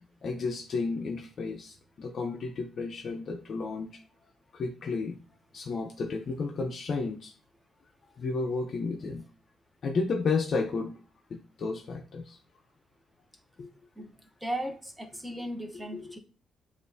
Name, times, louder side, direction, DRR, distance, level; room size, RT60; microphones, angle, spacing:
voice 1, 0.2-3.9 4.5-5.2 5.5-7.3 8.2-9.3 9.8-10.9 11.3-12.4 13.6-13.7 15.9-16.2, left 4 dB, 50° left, 0.5 m, -32 dB
voice 2, 14.4-16.2, right 1 dB, 5° right, 0.8 m, -36 dB
6.6 x 2.4 x 2.6 m
cardioid pair, 90°, 0 cm